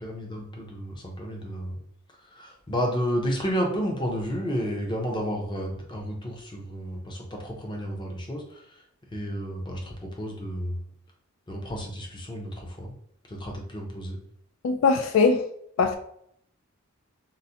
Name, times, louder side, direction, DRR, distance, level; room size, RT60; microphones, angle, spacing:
voice 1, 0.0-1.8 2.4-8.4 9.1-10.8 11.5-12.5 12.8-12.9 13.3-14.2, equal, 25° left, 0 dB, 0.6 m, -31 dB
voice 2, 14.6-15.4 15.8-16.0, left 4 dB, 70° left, 7 dB, 0.3 m, -21 dB
3.8 x 2.1 x 2.7 m, 0.69 s
head